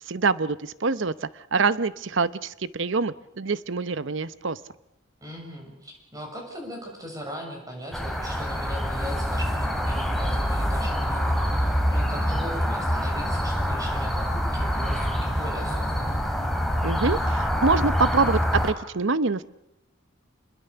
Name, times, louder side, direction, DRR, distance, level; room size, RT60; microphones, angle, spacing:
voice 1, 0.1-4.6 16.8-19.4, right 4 dB, 65° right, 15 dB, 0.8 m, -25 dB
voice 2, 5.2-16.2, equal, 20° right, 1 dB, 6.7 m, -39 dB
sound 1, 7.9-18.7, equal, ahead, 3.0 m, -25 dB
27.5 x 21.5 x 6.9 m, 0.85 s
head